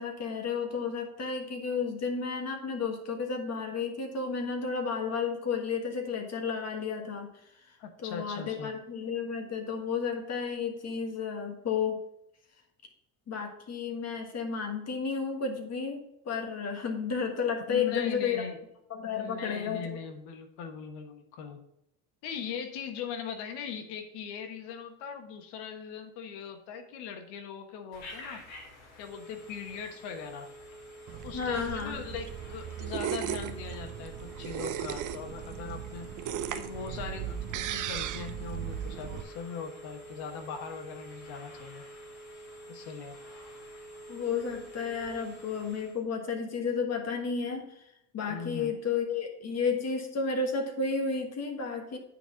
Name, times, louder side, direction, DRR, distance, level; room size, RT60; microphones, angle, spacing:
voice 1, 0.0-7.3 7.7-12.0 13.3-18.4 18.9-20.0 31.3-32.0 44.1-47.8 48.1-52.0, left 5 dB, 40° left, 4 dB, 1.5 m, -32 dB
voice 2, 7.8-8.7 17.7-18.6 19.1-21.6 22.2-28.4 29.0-30.5 31.2-36.1 36.5-41.8 42.7-43.2 48.3-48.7, left 6 dB, 90° left, 6 dB, 1.2 m, -40 dB
Telephone, 27.9-46.0, right 1 dB, 70° left, 3.0 m, -48 dB
sound 1, 31.1-39.2, right 10 dB, 50° right, 0.8 m, -37 dB
9.2 x 4.1 x 6.2 m, 0.80 s
cardioid pair, 115°, 39 cm